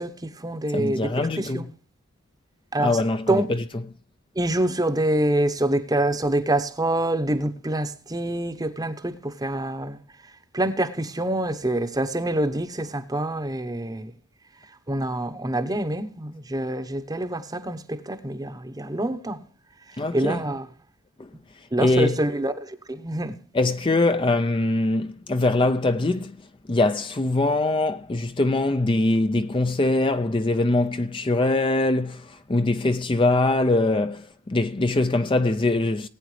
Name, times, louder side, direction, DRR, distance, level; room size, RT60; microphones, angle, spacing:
voice 1, 0.0-1.7 2.7-3.0 3.3-3.5 4.4-10.0 10.5-14.1 14.9-19.4 20.1-20.7 21.7-23.3, right 1 dB, 20° right, 0.9 m, -26 dB
voice 2, 0.7-1.6 2.8-3.5 20.0-20.4 21.2-21.3 21.8-22.2 23.5-26.3 26.7-32.2 32.5-36.1, left 2 dB, 25° left, 0.5 m, -22 dB
19.0 x 9.2 x 3.2 m
head